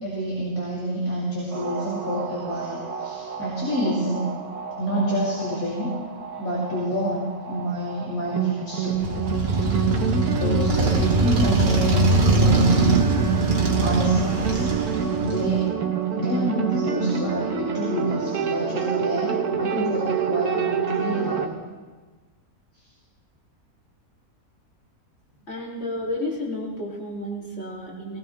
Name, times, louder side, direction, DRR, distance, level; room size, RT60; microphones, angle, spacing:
voice 1, 0.0-4.3 4.8-5.9 6.4-9.1 9.6-10.0 10.3-12.9 13.8-14.7 15.2-15.7 16.1-21.5, equal, 65° left, -7 dB, 3.4 m, -28 dB
sound 1, 1.5-21.5, right 8 dB, 80° right, 1.6 m, -27 dB
Motorcycle, 9.0-15.7, right 2 dB, 40° right, 1.6 m, -22 dB
voice 2, 25.5-28.2, left 1 dB, 50° left, -4 dB, 3.2 m, -31 dB
19.0 x 18.5 x 3.3 m, 1.3 s
omnidirectional pair, 1.6 m